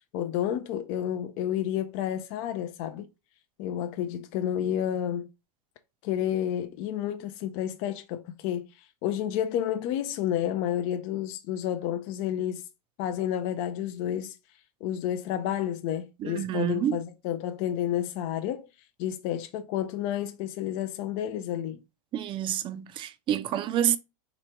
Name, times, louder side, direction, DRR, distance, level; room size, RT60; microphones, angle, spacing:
voice 1, 0.1-3.1 3.6-5.3 6.0-12.6 13.0-14.4 14.8-18.7 19.0-21.8, left 10 dB, 45° left, 0.5 m, -30 dB
voice 2, 16.2-17.0 22.1-24.0, right 10 dB, 25° right, 0.5 m, -28 dB
3.2 x 3.0 x 4.5 m
hypercardioid pair, 130°, 19 cm